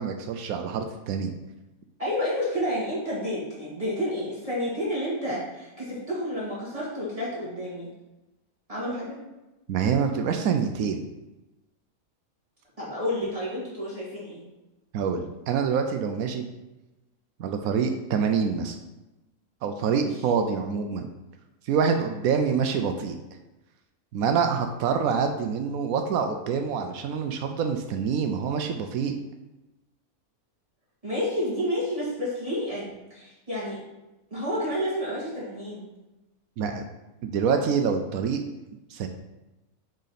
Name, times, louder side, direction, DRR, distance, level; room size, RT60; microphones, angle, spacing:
voice 1, 0.0-1.3 9.7-11.0 14.9-16.5 17.4-18.8 19.6-21.1 21.7-23.2 24.1-29.1 36.6-36.8 37.2-38.4 38.9-39.1, right 6 dB, 85° right, 5 dB, 1.1 m, -26 dB
voice 2, 2.0-7.9 8.7-9.2 12.8-14.4 19.9-20.1 31.0-33.8 34.3-35.9, equal, 25° right, -8 dB, 2.1 m, -30 dB
6.5 x 5.0 x 4.1 m, 1.0 s
omnidirectional pair, 1.5 m